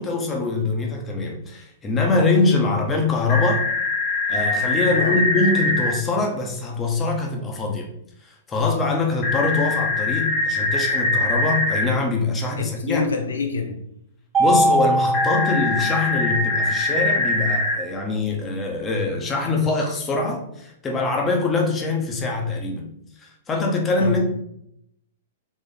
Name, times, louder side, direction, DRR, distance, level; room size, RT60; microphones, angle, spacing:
voice 1, 0.0-3.7 4.3-7.9 8.2-13.0 14.4-22.9 23.2-24.3, left 3 dB, 20° left, 0.9 m, -23 dB
sound 1, 3.3-5.9 9.2-11.8 15.1-17.7, left 2 dB, 40° left, 1.4 m, -23 dB
voice 2, 4.9-5.2 12.6-13.8 24.0-24.3, left 5 dB, 85° left, 0.6 m, -27 dB
Mallet percussion, 14.3-16.6, right 1 dB, 20° right, 1.0 m, -22 dB
4.1 x 2.5 x 3.9 m
hypercardioid pair, 125°, 0 cm